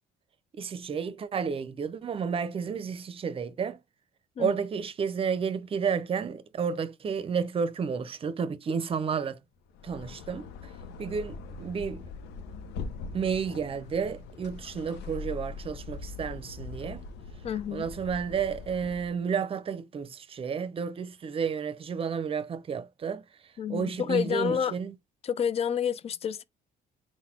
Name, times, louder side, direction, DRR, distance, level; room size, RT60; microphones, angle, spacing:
voice 1, 0.6-3.8 4.4-9.4 9.8-10.5 11.0-12.0 13.1-17.1 17.7-23.2 23.7-24.9, right 6 dB, 35° right, 0.6 m, -31 dB
sound 1, 9.7-19.2, left 4 dB, 85° left, 0.7 m, -41 dB
voice 2, 17.4-17.9 23.6-24.8 25.2-26.4, left 8 dB, 35° left, 0.4 m, -29 dB
4.0 x 2.2 x 4.4 m
cardioid pair, 110°, 17 cm